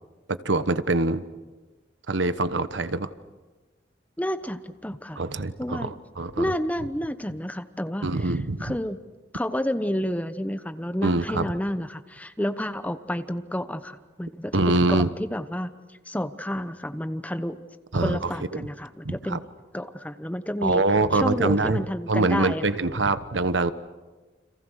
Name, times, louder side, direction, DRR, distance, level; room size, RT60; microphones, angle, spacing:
voice 1, 0.3-1.2 2.1-3.1 5.2-6.5 8.0-8.7 11.0-11.5 14.5-15.1 17.9-18.7 19.0-19.4 20.6-23.7, right 2 dB, 80° right, 12 dB, 1.2 m, -24 dB
voice 2, 4.2-5.2 5.6-5.9 6.4-8.3 8.6-9.0 9.3-15.7 16.1-17.6 17.9-19.4 19.7-20.8 21.1-22.6, equal, 10° left, 10 dB, 1.0 m, -30 dB
30.0 x 27.0 x 6.5 m, 1.3 s
head